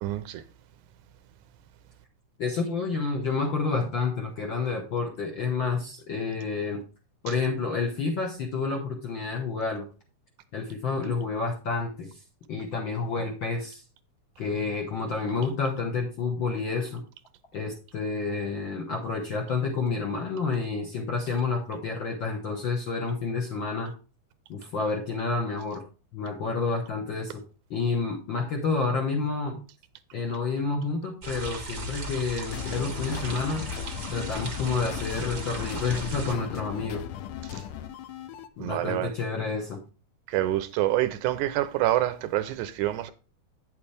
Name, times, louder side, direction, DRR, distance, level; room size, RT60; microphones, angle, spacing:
voice 1, 0.0-0.4 37.5-37.6 38.6-39.1 40.3-43.1, right 14 dB, 80° right, 2.1 m, -27 dB
voice 2, 2.4-6.8 7.2-9.9 10.5-12.2 12.5-13.8 14.4-17.0 17.5-23.9 24.5-25.8 26.1-27.4 27.7-29.6 30.1-33.7 34.1-37.0 38.6-39.8, left 4 dB, 55° left, 1.3 m, -29 dB
sound 1, 31.2-36.4, equal, 55° right, 0.8 m, -36 dB
sound 2, 32.5-38.5, left 10 dB, 75° left, 1.6 m, -38 dB
9.1 x 7.1 x 3.4 m
omnidirectional pair, 3.6 m